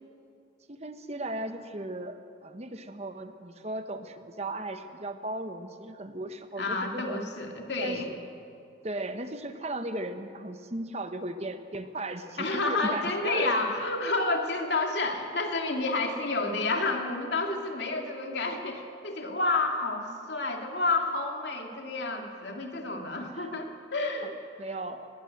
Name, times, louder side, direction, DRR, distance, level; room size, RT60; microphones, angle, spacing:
voice 1, 0.7-7.2 7.8-8.2 8.8-13.5 23.3-23.5 24.2-25.1, right 1 dB, 35° right, 8 dB, 1.1 m, -37 dB
voice 2, 6.6-8.1 12.4-24.4, left 3 dB, 70° left, 3 dB, 2.4 m, -30 dB
19.5 x 18.5 x 7.8 m, 2.5 s
head